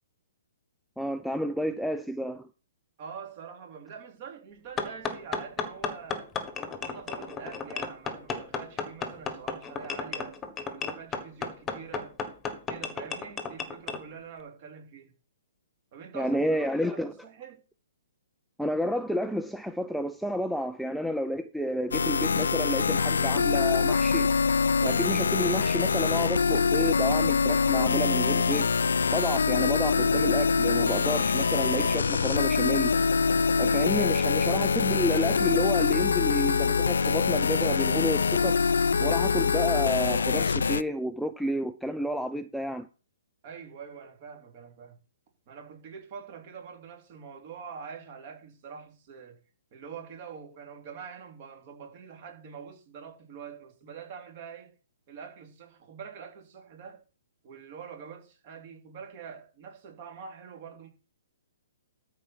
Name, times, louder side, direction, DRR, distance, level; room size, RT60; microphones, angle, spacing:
voice 1, 1.0-2.5 16.1-17.1 18.6-24.3 24.8-28.8 29.1-33.0 33.6-38.6 39.0-42.9, equal, ahead, 0.4 m, -30 dB
voice 2, 3.0-6.3 6.8-10.4 10.7-12.2 12.7-15.1 15.9-17.6 43.4-45.0 45.5-49.4 49.7-54.7 55.1-57.0 57.4-60.9, right 6 dB, 40° right, 3.2 m, -45 dB
sound 1, 4.8-14.0, left 5 dB, 15° left, 1.4 m, -34 dB
sound 2, 21.9-40.8, left 5 dB, 85° left, 0.4 m, -24 dB
13.0 x 4.7 x 5.9 m
hypercardioid pair, 145°, 0 cm